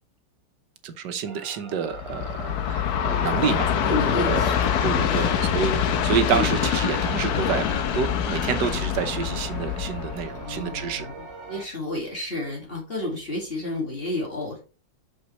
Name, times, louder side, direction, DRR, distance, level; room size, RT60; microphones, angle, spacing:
voice 1, 0.8-3.7 4.3-4.5 4.8-7.7 7.9-11.1, right 7 dB, 80° right, 1.5 m, -28 dB
sound 1, 1.2-11.7, right 4 dB, 15° right, 2.5 m, -43 dB
Train, 1.9-11.1, left 8 dB, 70° left, 1.2 m, -25 dB
voice 2, 2.9-3.6 3.8-4.7 5.0-5.3 6.3-6.6 10.2-14.6, left 1 dB, 35° left, 2.2 m, -31 dB
6.1 x 5.5 x 3.0 m
omnidirectional pair, 1.8 m